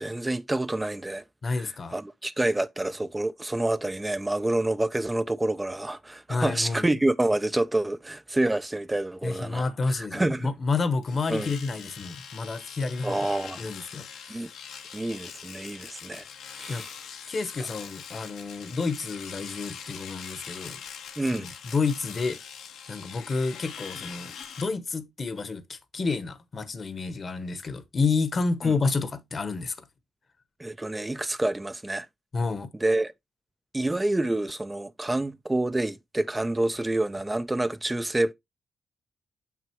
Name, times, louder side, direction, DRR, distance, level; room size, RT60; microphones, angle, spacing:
voice 1, 0.0-10.5 11.3-11.5 13.0-13.6 14.3-14.5 14.9-16.2 16.5-16.9 21.2-21.5 28.6-28.7 30.6-32.1 32.8-33.1 33.7-38.3, right 2 dB, 15° right, 0.4 m, -28 dB
voice 2, 1.4-1.9 6.3-6.9 9.2-13.3 13.6-14.5 16.7-16.8 17.3-20.8 21.2-22.4 22.9-29.8 32.3-32.7, left 4 dB, 45° left, 1.1 m, -30 dB
Domestic sounds home sounds, 11.0-24.7, left 7 dB, 85° left, 1.3 m, -43 dB
6.7 x 6.0 x 2.9 m
cardioid pair, 75°, 0 cm